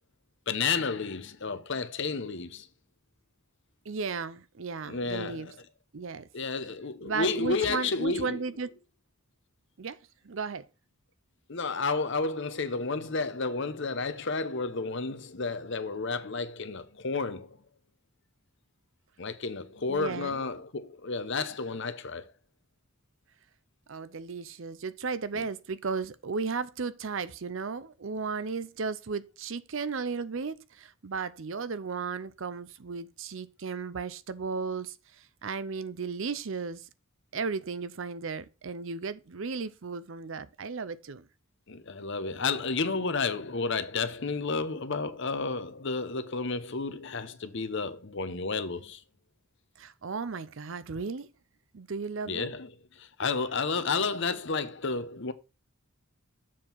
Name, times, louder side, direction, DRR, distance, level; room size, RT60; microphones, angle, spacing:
voice 1, 0.5-2.7 4.8-5.5 6.3-8.4 11.5-17.6 19.2-22.3 25.3-25.5 41.7-49.0 52.3-55.3, left 4 dB, 55° left, 0.9 m, -31 dB
voice 2, 3.9-5.5 5.9-6.3 7.0-8.8 9.8-10.0 10.2-10.6 19.9-20.4 23.9-36.9 37.3-41.3 49.8-51.3 51.7-52.5, right 5 dB, 60° right, 0.6 m, -35 dB
7.4 x 4.6 x 5.5 m
head